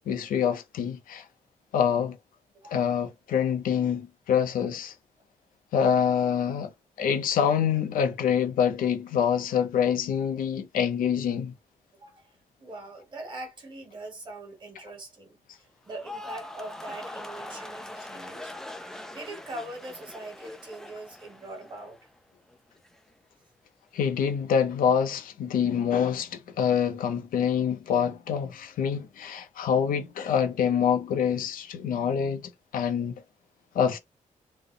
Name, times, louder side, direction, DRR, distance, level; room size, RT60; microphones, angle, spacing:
voice 1, 0.1-1.3 1.7-2.2 2.7-4.9 5.7-6.7 7.0-11.5 23.9-33.1 33.7-34.0, left 8 dB, 85° left, 0.7 m, -26 dB
voice 2, 2.5-2.9 11.9-18.5 19.1-22.1, right 2 dB, 35° right, 1.4 m, -42 dB
sound 1, 15.8-22.2 22.5-23.0, left 1 dB, 5° left, 0.4 m, -42 dB
3.4 x 2.2 x 3.8 m
wide cardioid pair, 175°, 14 cm